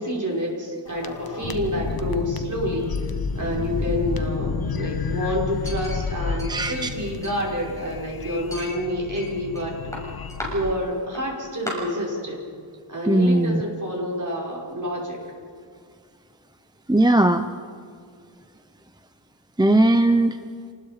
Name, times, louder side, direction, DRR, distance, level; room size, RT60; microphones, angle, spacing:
voice 1, 0.0-9.8 10.5-12.4 12.9-15.2, equal, 40° right, -2 dB, 5.4 m, -28 dB
sound 1, 0.9-10.7, left 5 dB, 50° left, 1.2 m, -30 dB
Chink clink, 5.6-6.9 7.2-8.0 8.5-9.6 9.9-10.5 11.1-11.2 11.7-11.8, left 1 dB, 5° left, 7.0 m, -36 dB
voice 2, 6.5-6.9 13.1-13.6 16.9-17.5 19.6-20.4, right 1 dB, 10° right, 9 dB, 0.7 m, -18 dB
27.5 x 19.5 x 5.1 m, 2.1 s
wide cardioid pair, 80°, 47 cm